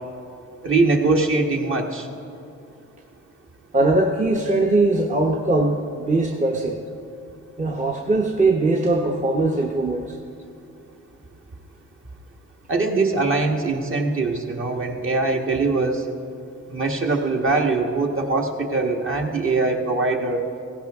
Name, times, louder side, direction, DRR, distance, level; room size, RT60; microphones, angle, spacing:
voice 1, 0.6-2.1 12.7-16.0 16.7-20.4, right 3 dB, 45° right, 2 dB, 1.5 m, -22 dB
voice 2, 3.7-6.8 7.6-10.2, right 2 dB, 25° right, 1 dB, 0.9 m, -21 dB
16.5 x 16.0 x 3.6 m, 2.6 s
cardioid pair, 90°, 30 cm